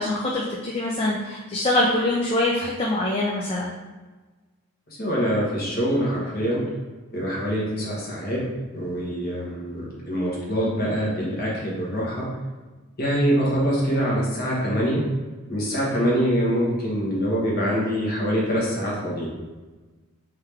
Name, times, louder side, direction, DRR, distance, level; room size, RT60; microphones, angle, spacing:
voice 1, 0.0-3.7, left 2 dB, 25° left, -3 dB, 0.4 m, -24 dB
voice 2, 4.9-6.6 7.1-8.4 8.7-12.3 13.0-15.0 15.5-19.3, equal, 40° left, -5 dB, 1.2 m, -24 dB
3.7 x 3.2 x 3.4 m, 1.2 s
head